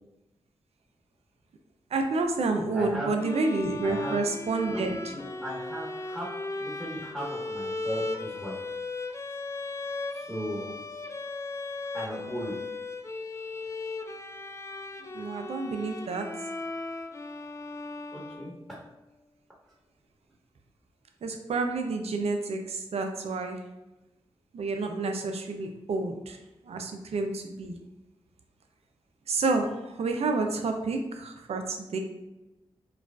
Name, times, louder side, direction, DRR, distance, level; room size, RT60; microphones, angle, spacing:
voice 1, 1.9-5.1 15.1-16.3 21.2-23.6 24.5-26.4 26.6-27.7 29.3-32.0, right 3 dB, 75° right, 4 dB, 0.5 m, -29 dB
voice 2, 2.7-3.1 3.8-4.2 4.6-6.3 6.6-8.5 10.1-10.7 11.9-12.5 18.1-18.5, right 1 dB, 5° right, -6 dB, 1.2 m, -37 dB
sound 1, 3.2-18.9, left 3 dB, 25° left, 0.4 m, -37 dB
4.7 x 2.3 x 2.3 m, 1.0 s
cardioid pair, 45°, 11 cm